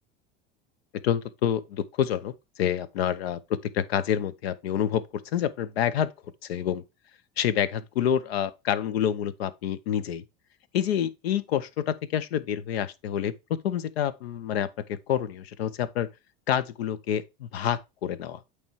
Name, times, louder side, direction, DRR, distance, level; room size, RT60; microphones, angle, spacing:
voice 1, 1.0-5.0 5.3-6.1 6.5-6.8 7.4-10.2 10.7-13.3 13.6-16.1 16.5-18.4, left 9 dB, 85° left, 0.8 m, -28 dB
8.7 x 3.3 x 4.6 m
supercardioid pair, 105°, 30 cm